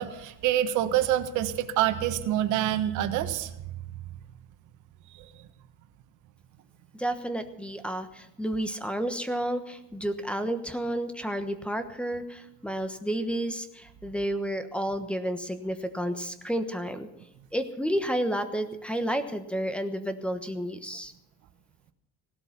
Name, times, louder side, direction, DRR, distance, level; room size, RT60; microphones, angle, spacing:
voice 1, 0.0-3.5 5.2-5.3, right 12 dB, 75° right, 10 dB, 1.4 m, -26 dB
voice 2, 6.9-17.1 17.5-21.1, right 1 dB, 5° left, 9 dB, 1.1 m, -31 dB
17.5 x 12.5 x 6.0 m, 0.85 s
cardioid pair, 135°, 30 cm